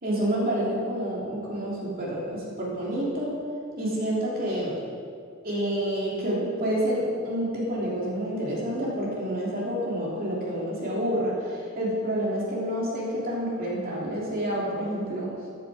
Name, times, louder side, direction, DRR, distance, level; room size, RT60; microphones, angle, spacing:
voice 1, 0.0-3.3 3.7-4.8 5.4-15.3, equal, 45° right, -5 dB, 3.1 m, -28 dB
14.5 x 10.0 x 5.0 m, 2.3 s
head